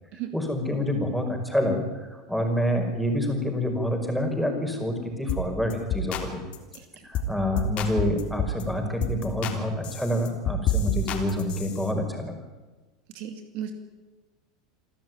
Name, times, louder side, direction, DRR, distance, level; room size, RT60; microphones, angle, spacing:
voice 1, 0.3-6.4 7.0-12.3, left 1 dB, ahead, 4 dB, 5.7 m, -27 dB
sound 1, 5.3-5.4 5.7-6.3 6.5-6.8 7.1-7.3 7.6-8.6 9.0-9.6 9.8-11.9, left 3 dB, 45° left, 3.8 m, -28 dB
voice 2, 13.1-13.7, right 10 dB, 55° right, 6 dB, 2.6 m, -35 dB
28.0 x 13.0 x 9.6 m, 1.3 s
hypercardioid pair, 95°, 3 cm